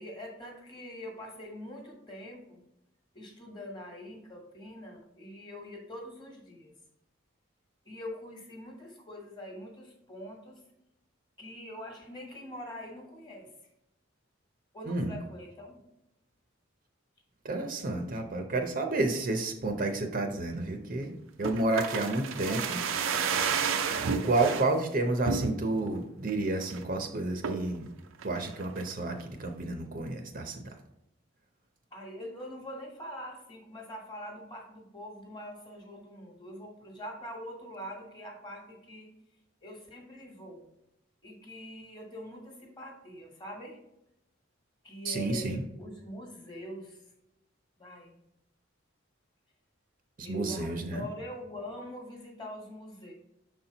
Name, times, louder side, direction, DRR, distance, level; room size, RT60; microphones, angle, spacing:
voice 1, 0.0-2.6 3.1-6.7 7.8-10.6 11.4-13.5 14.7-15.8 22.4-22.8 31.9-39.1 39.6-40.6 41.2-43.8 44.8-47.0 47.8-48.1 50.2-53.1, equal, 20° left, 1 dB, 1.3 m, -44 dB
voice 2, 17.4-22.8 23.9-27.9 28.2-30.7 45.0-45.6 50.2-51.1, right 2 dB, 40° right, 5 dB, 0.6 m, -30 dB
sound 1, 21.4-24.7 25.2-25.9 26.3-26.4 26.6-26.9 27.4-27.8 28.2-28.9 29.2-29.3, right 5 dB, 80° right, 0.5 m, -31 dB
6.2 x 4.3 x 3.9 m, 0.85 s
head